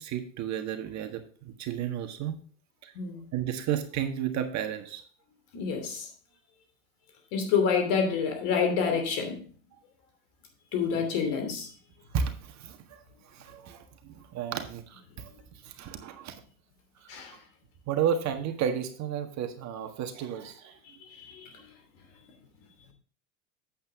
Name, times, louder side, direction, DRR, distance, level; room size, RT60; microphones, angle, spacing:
voice 1, 0.0-2.4 2.8-2.9 3.3-5.0 11.0-11.1 12.1-16.4 17.0-17.2 17.9-20.8, right 8 dB, 45° right, 6 dB, 1.6 m, -33 dB
voice 2, 2.9-3.3 5.5-6.1 7.3-9.4 10.7-11.7 17.1-17.4 21.2-21.5, left 6 dB, 60° left, 6 dB, 3.0 m, -28 dB
8.8 x 8.0 x 3.7 m, 0.43 s
hypercardioid pair, 95°, 40 cm